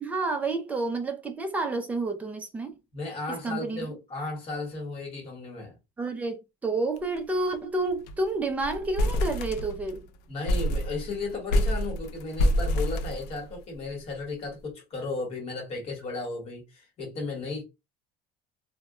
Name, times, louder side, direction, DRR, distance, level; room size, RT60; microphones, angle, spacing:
voice 1, 0.0-2.8 3.3-3.8 6.0-10.1, right 2 dB, 10° right, 0.3 m, -30 dB
voice 2, 2.9-5.8 10.3-17.6, left 3 dB, 35° left, 1.1 m, -35 dB
sound 1, 7.0-7.2 7.5-7.6 7.9-8.3 8.6-10.0 10.5-13.8, equal, 65° left, 0.4 m, -27 dB
2.1 x 2.1 x 3.5 m
cardioid pair, 180°, 18 cm